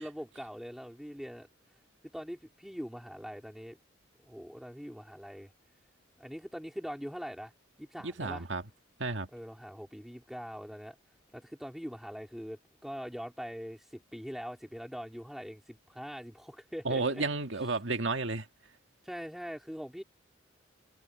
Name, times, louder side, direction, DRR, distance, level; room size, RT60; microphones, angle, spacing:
voice 1, 0.0-1.5 2.1-3.8 4.3-5.5 6.2-7.5 7.8-8.5 9.3-11.0 11.3-17.2 19.0-20.0, equal, ahead, 3.7 m, -42 dB
voice 2, 8.0-8.6 9.0-9.3 16.9-18.5, right 3 dB, 70° right, 1.9 m, -32 dB
head